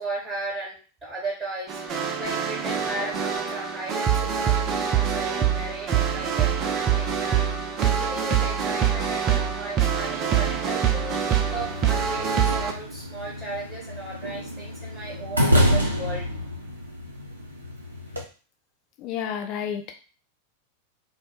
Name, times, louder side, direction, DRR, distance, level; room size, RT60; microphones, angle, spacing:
voice 1, 0.0-7.4 7.9-16.3, right 2 dB, 15° right, -4 dB, 0.9 m, -36 dB
sound 1, 1.7-12.7, right 8 dB, 30° right, 0.4 m, -25 dB
sound 2, 11.5-18.2, equal, 80° right, 0.6 m, -27 dB
voice 2, 19.0-20.0, left 8 dB, 40° left, 3 dB, 0.6 m, -31 dB
2.1 x 2.0 x 3.3 m, 0.35 s
figure-of-eight pair, 90°, 0 cm